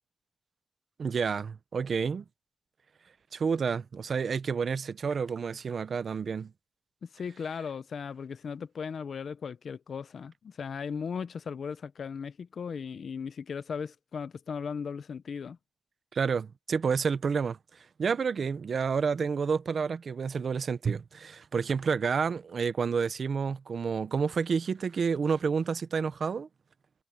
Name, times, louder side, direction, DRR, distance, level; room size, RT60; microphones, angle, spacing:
voice 1, 1.0-2.2 3.3-6.5 16.1-17.6 18.0-26.5, right 5 dB, 70° right, 0.8 m, -29 dB
voice 2, 7.0-15.6, left 6 dB, 80° left, 0.6 m, -37 dB
wide cardioid pair, 110°, 0 cm